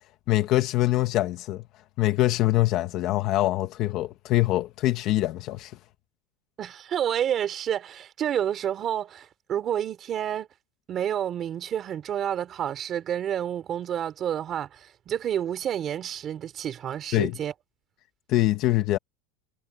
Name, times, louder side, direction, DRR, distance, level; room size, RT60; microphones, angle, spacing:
voice 1, 0.3-1.6 2.0-5.7 17.1-17.4 18.3-19.0, left 16 dB, 35° left, 1.4 m, -24 dB
voice 2, 6.6-10.5 10.9-17.5, right 10 dB, 25° right, 3.5 m, -29 dB
supercardioid pair, 175°, 0 cm